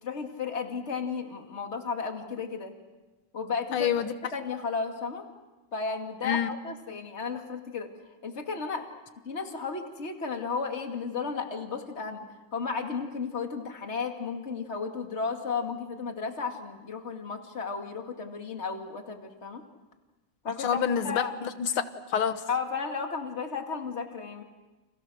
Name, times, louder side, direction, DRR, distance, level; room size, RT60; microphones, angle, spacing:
voice 1, 0.0-2.7 3.3-3.9 4.3-5.2 5.7-7.9 8.2-8.8 9.3-12.2 12.5-19.6 20.4-20.7 21.0-21.3 22.5-24.4, left 5 dB, 35° left, 4 dB, 2.4 m, -33 dB
voice 2, 3.7-4.1 6.2-6.5 20.6-21.8 22.1-22.4, left 8 dB, 90° left, 10 dB, 2.1 m, -27 dB
30.0 x 28.5 x 6.4 m, 1.1 s
omnidirectional pair, 2.3 m